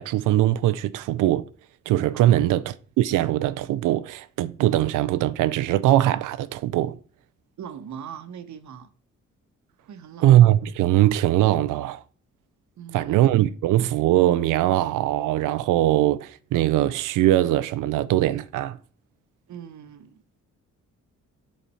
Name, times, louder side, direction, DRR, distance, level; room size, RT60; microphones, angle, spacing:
voice 1, 0.0-1.5 1.9-7.0 10.2-12.0 12.9-18.8, right 13 dB, 85° right, 0.5 m, -21 dB
voice 2, 2.1-2.6 7.6-8.9 9.8-10.3 12.8-13.4 19.5-20.2, right 8 dB, 65° right, 1.0 m, -41 dB
7.3 x 4.2 x 5.6 m
cardioid pair, 70°, 31 cm